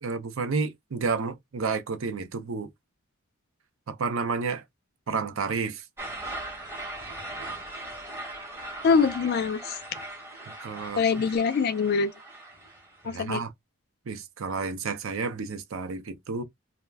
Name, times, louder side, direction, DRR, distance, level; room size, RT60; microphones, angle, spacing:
voice 1, 0.0-2.7 3.9-4.6 5.1-5.8 10.6-11.2 13.0-13.5 14.1-16.4, right 4 dB, 60° right, 0.5 m, -31 dB
sound 1, 6.0-13.1, right 2 dB, 10° right, 0.8 m, -39 dB
voice 2, 8.8-9.8 11.0-12.1 13.0-13.4, left 5 dB, 45° left, 0.3 m, -24 dB
2.3 x 2.1 x 3.3 m
head